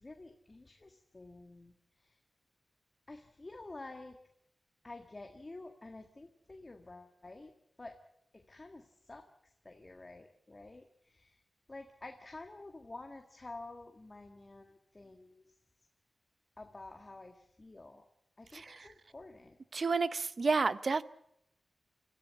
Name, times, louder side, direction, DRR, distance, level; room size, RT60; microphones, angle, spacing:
voice 1, 0.0-1.7 2.0-2.1 3.1-4.2 4.8-7.5 7.8-8.0 8.3-9.3 9.7-11.4 11.7-15.4 16.6-18.0 18.4-19.6, left 2 dB, 30° left, 1.8 m, -50 dB
voice 2, 18.5-18.9 19.7-21.0, right 4 dB, 50° right, 0.8 m, -31 dB
26.5 x 14.5 x 8.3 m
wide cardioid pair, 105°, 0 cm